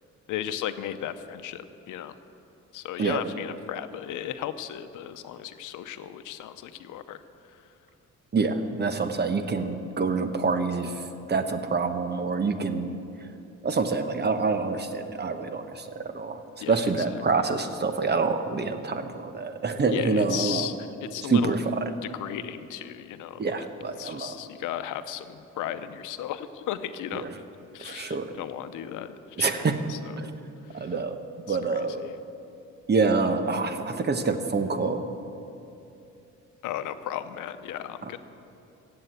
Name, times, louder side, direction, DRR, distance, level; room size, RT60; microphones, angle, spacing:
voice 1, 0.3-2.1 2.7-7.2 7.5-7.6 16.6-17.2 19.9-21.5 22.0-23.4 24.0-27.3 27.7-29.5 29.9-30.2 30.7-30.9 31.5-32.2 36.6-38.2, left 11 dB, 85° left, 11 dB, 0.8 m, -35 dB
voice 2, 8.3-10.9 11.3-13.0 13.6-16.4 16.7-20.7 21.3-21.8 23.4-24.3 27.1-27.3 27.8-28.3 29.4-29.8 30.2-30.3 30.7-31.2 31.5-32.1 32.9-35.0, right 4 dB, 35° right, 8 dB, 1.1 m, -26 dB
16.0 x 7.9 x 8.1 m, 2.7 s
cardioid pair, 90°, 30 cm